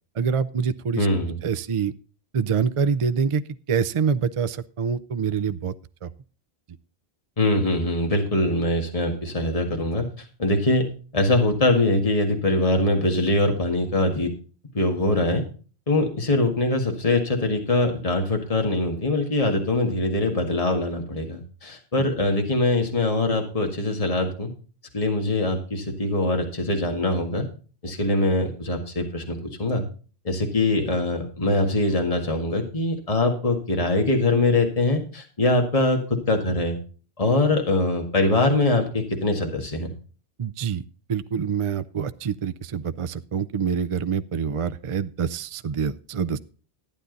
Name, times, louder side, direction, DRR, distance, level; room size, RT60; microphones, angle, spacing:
voice 1, 0.2-1.1 1.4-1.9 2.3-3.4 3.7-5.7 6.0-6.1 40.4-40.8 41.1-46.4, right 6 dB, 40° right, 13 dB, 0.5 m, -25 dB
voice 2, 1.0-1.4 7.4-10.1 10.4-10.8 11.1-14.3 14.7-15.4 15.9-24.5 24.9-27.5 27.8-29.8 30.2-36.8 37.2-39.9, left 2 dB, 35° left, 3 dB, 1.9 m, -23 dB
12.5 x 10.0 x 3.9 m, 0.38 s
omnidirectional pair, 1.1 m